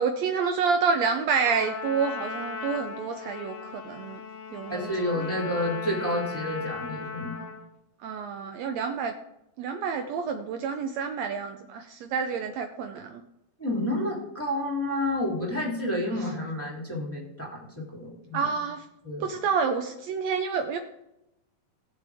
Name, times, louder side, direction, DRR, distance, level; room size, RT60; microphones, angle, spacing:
voice 1, 0.0-4.2 4.5-5.3 8.0-9.1 9.6-13.2 18.3-18.8 19.2-20.8, right 5 dB, 85° right, 5 dB, 1.5 m, -28 dB
Trumpet, 1.5-7.7, left 5 dB, 85° left, 2.9 m, -37 dB
voice 2, 4.7-7.4 13.6-18.5 19.0-19.2, left 1 dB, 5° left, -5 dB, 2.5 m, -30 dB
19.0 x 6.7 x 3.5 m, 0.86 s
omnidirectional pair, 3.9 m